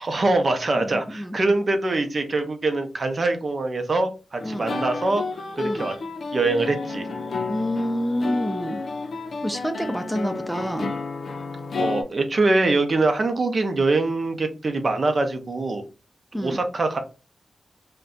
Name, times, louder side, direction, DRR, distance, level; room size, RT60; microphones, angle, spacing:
voice 1, 0.0-5.2 5.6-5.9 6.3-7.1 11.8-15.8 16.3-17.0, right 2 dB, 45° right, 0.6 m, -23 dB
voice 2, 0.8-1.4 4.4-4.7 5.6-5.9 7.5-8.8 9.4-10.9 16.3-16.6, equal, ahead, 0.4 m, -28 dB
sound 1, 4.4-12.0, left 3 dB, 70° left, 0.4 m, -31 dB
2.5 x 2.2 x 3.7 m
wide cardioid pair, 100°, 0 cm